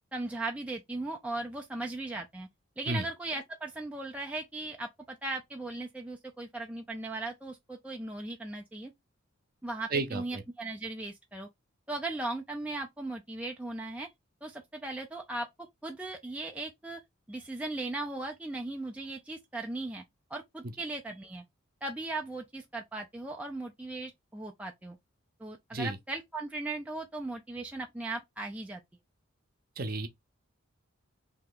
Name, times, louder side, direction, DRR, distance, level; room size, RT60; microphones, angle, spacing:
voice 1, 0.1-2.5 2.8-8.9 9.6-11.5 11.9-14.1 14.4-15.5 15.8-17.0 17.3-20.0 20.3-21.4 21.8-25.0 25.4-28.8, right 2 dB, 5° right, 0.3 m, -38 dB
voice 2, 9.9-10.4 25.7-26.0 29.8-30.1, right 2 dB, 40° right, 0.6 m, -32 dB
3.2 x 2.8 x 3.7 m
head